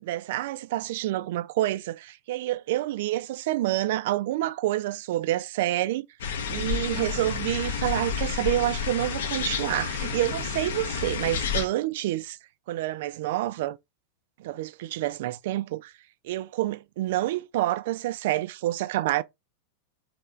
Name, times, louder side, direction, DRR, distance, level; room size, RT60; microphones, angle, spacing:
voice 1, 0.0-6.1 6.5-12.4 12.7-13.8 14.4-15.9 16.2-19.2, right 15 dB, 55° right, 0.3 m, -28 dB
sound 1, 6.2-11.7, left 6 dB, 60° left, 0.6 m, -30 dB
4.3 x 2.8 x 3.2 m
figure-of-eight pair, 90°, 0 cm